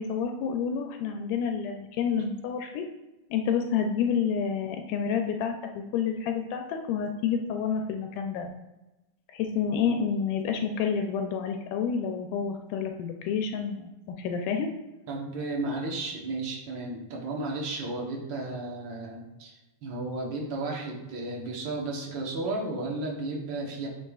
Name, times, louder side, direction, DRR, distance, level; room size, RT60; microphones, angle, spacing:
voice 1, 0.0-2.9 3.3-8.5 9.3-13.9 14.2-14.7, left 7 dB, 85° left, 4 dB, 2.1 m, -29 dB
voice 2, 15.1-23.9, right 2 dB, 65° right, -1 dB, 1.1 m, -33 dB
8.9 x 5.1 x 2.3 m, 1.0 s
omnidirectional pair, 3.6 m